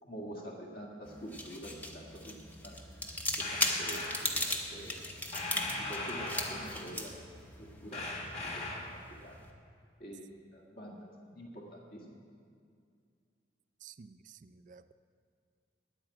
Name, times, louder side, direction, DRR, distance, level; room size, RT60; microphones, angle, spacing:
voice 1, 0.0-2.8 3.4-5.0 5.5-7.1 7.6-8.1 9.2-9.4 10.0-12.2, right 1 dB, 50° left, -1 dB, 2.0 m, -46 dB
sound 1, 1.0-9.5, left 1 dB, 10° left, 0.9 m, -38 dB
sound 2, 3.4-4.3 5.3-6.9 7.9-9.0, left 2 dB, 35° left, 1.8 m, -39 dB
voice 2, 13.8-14.9, right 6 dB, 45° right, 12 dB, 0.4 m, -53 dB
9.9 x 8.7 x 7.8 m, 2.3 s
head